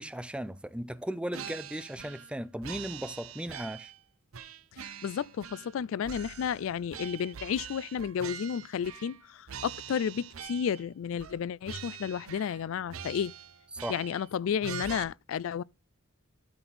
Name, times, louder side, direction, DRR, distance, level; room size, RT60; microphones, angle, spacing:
voice 1, 0.0-3.9 13.7-14.0, right 1 dB, 5° right, 0.5 m, -37 dB
sound 1, 1.3-2.3 2.6-4.0 4.3-5.8 6.0-9.2 9.5-10.8 11.2-11.4 11.6-12.6 12.9-14.3 14.6-15.0, right 8 dB, 80° right, 0.8 m, -43 dB
voice 2, 4.7-13.3 13.9-15.6, left 7 dB, 70° left, 0.3 m, -32 dB
13.0 x 4.4 x 4.1 m
head